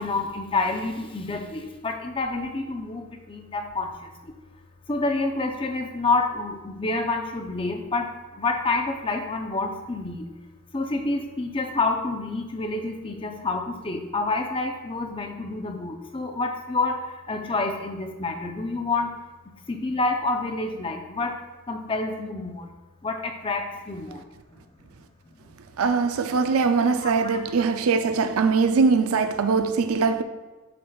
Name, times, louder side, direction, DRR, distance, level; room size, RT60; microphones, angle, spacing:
voice 1, 0.0-4.3 4.9-10.3 10.7-19.2 19.7-21.4 21.7-22.7 23.0-24.2 27.0-27.4, left 3 dB, 25° left, 0.6 m, -28 dB
voice 2, 25.8-30.2, right 5 dB, 85° right, 0.4 m, -22 dB
7.5 x 6.1 x 2.3 m
head